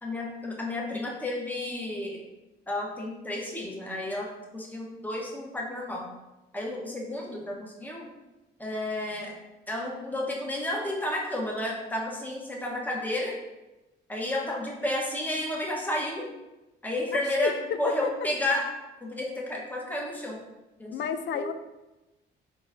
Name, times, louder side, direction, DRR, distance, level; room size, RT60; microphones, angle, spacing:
voice 1, 0.0-2.2 2.7-6.1 6.5-8.1 8.6-9.4 9.7-13.4 14.1-16.3 16.8-20.4 20.8-21.5, left 1 dB, 10° left, -2 dB, 1.0 m, -32 dB
voice 2, 17.1-17.5 17.9-18.1 20.9-21.5, left 8 dB, 65° left, 10 dB, 0.4 m, -31 dB
4.5 x 3.8 x 2.6 m, 1.0 s
cardioid pair, 90°, 20 cm